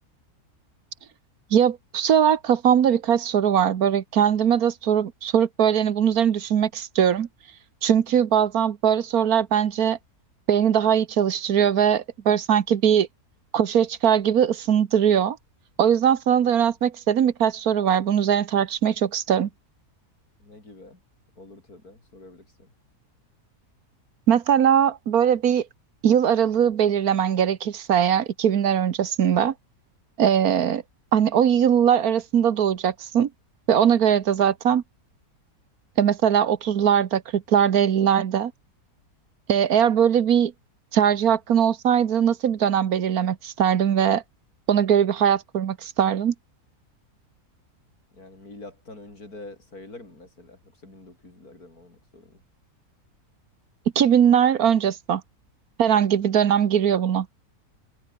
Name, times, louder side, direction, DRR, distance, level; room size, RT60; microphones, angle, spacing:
voice 1, 1.5-7.3 7.8-10.0 10.5-13.1 13.5-15.4 15.8-19.5 24.3-25.7 26.0-29.5 30.2-30.8 31.1-33.3 33.7-34.8 36.0-38.5 39.5-40.5 40.9-44.2 44.7-46.3 53.9-55.2 55.8-57.3, right 9 dB, 70° right, 1.5 m, -20 dB
voice 2, 20.4-21.0 21.4-22.7 48.1-52.4, left 2 dB, 70° left, 6.9 m, -46 dB
omnidirectional pair, 1.6 m